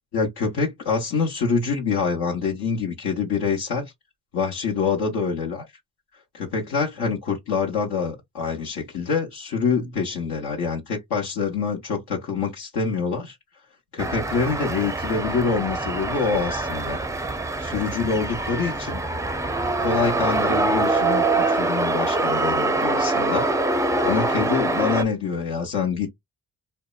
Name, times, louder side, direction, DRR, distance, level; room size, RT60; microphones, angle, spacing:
voice 1, 0.1-3.9 4.3-5.7 6.3-13.4 13.9-17.0 17.6-19.0 19.8-23.5 24.0-26.1, left 5 dB, 70° left, 0.9 m, -26 dB
sound 1, 14.0-25.0, right 2 dB, 10° right, 0.4 m, -24 dB
2.7 x 2.1 x 2.3 m
supercardioid pair, 50°, 41 cm